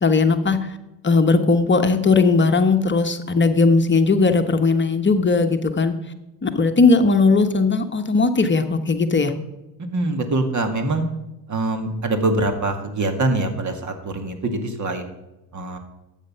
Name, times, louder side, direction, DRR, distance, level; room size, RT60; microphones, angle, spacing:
voice 1, 0.0-0.8 1.0-6.0 6.4-9.3, left 3 dB, 25° left, 6 dB, 1.1 m, -18 dB
voice 2, 9.9-11.0 11.5-15.1 15.5-15.8, right 2 dB, 40° right, 6 dB, 2.2 m, -24 dB
11.5 x 8.4 x 5.7 m, 0.99 s
supercardioid pair, 75°, 45 cm